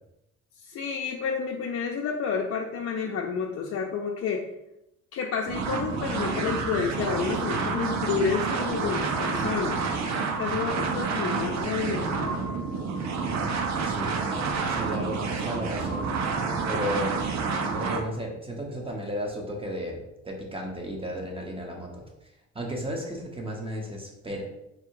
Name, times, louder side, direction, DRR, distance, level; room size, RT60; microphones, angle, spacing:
voice 1, 0.6-4.4 5.1-9.8 10.4-12.6, left 6 dB, 55° left, 0 dB, 0.6 m, -30 dB
sound 1, 5.5-18.0, right 4 dB, 65° right, 0.7 m, -29 dB
voice 2, 13.8-14.2 14.7-16.1 16.6-17.2 17.7-22.0 22.5-24.4, equal, 20° right, 0 dB, 1.1 m, -34 dB
4.1 x 2.3 x 4.7 m, 0.86 s
cardioid pair, 90°, 30 cm